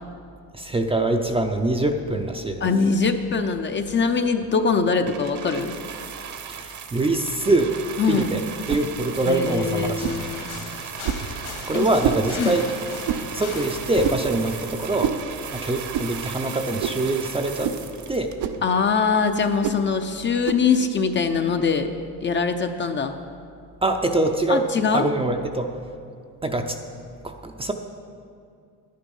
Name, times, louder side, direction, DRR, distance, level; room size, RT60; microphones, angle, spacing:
voice 1, 0.5-2.7 6.5-7.8 8.0-8.4 8.7-10.1 10.5-10.7 11.7-12.7 13.3-15.2 15.5-17.7 18.1-18.3 23.8-24.7 24.9-25.7 26.4-26.8 27.2-27.7, right 2 dB, 15° right, 4 dB, 0.5 m, -24 dB
voice 2, 2.6-5.7 8.0-8.3 9.3-10.4 11.7-11.9 12.4-12.5 18.6-21.9 22.2-23.2 24.5-25.1, left 5 dB, 30° left, 7 dB, 0.6 m, -22 dB
sound 1, 5.1-18.7 19.5-19.6, right 7 dB, 45° right, 1.0 m, -37 dB
sound 2, 8.7-8.9 10.0-10.2 11.0-11.3 12.0-12.3 13.0-13.3 14.0-14.3 15.0-15.2 15.9-16.1 16.8-17.1 17.6-17.8 18.4-18.6 19.6-19.8 20.4-20.7, right 9 dB, 75° right, 0.8 m, -27 dB
sound 3, 10.0-15.0, left 5 dB, 65° left, 2.0 m, -39 dB
11.0 x 10.5 x 5.4 m, 2.3 s
cardioid pair, 120°, 41 cm